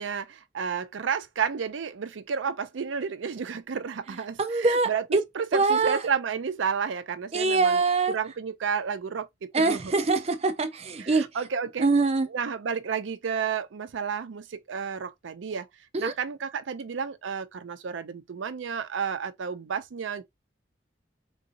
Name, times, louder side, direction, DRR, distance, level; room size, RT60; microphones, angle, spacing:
voice 1, 0.0-9.9 11.0-11.9 12.3-15.7 16.0-20.2, right 6 dB, 90° right, 0.5 m, -31 dB
voice 2, 4.4-5.2 5.5-6.0 7.3-8.1 9.5-11.3 11.8-12.3 15.9-16.1, right 3 dB, 35° right, 0.5 m, -23 dB
3.8 x 2.7 x 2.6 m
head